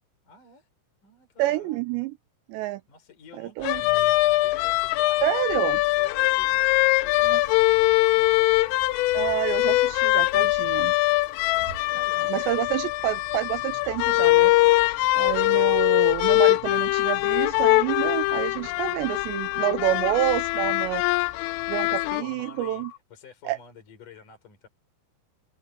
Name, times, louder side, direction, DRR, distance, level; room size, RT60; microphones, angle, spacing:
voice 1, 0.2-0.7 1.0-1.8 2.9-8.4 11.5-12.6 21.9-24.7, left 6 dB, 40° left, 6.2 m, -50 dB
voice 2, 1.4-2.1 2.5-2.8 3.4-3.8 5.2-5.8 7.2-7.4 9.1-10.9 12.3-14.5 15.1-21.0 21.7-22.9 23.5-23.6, right 15 dB, 85° right, 2.6 m, -28 dB
sound 1, 3.6-22.2, left 20 dB, 90° left, 3.2 m, -22 dB
sound 2, 4.7-23.0, left 14 dB, 70° left, 3.6 m, -45 dB
sound 3, 7.1-12.5, right 6 dB, 55° right, 3.6 m, -51 dB
omnidirectional pair, 5.7 m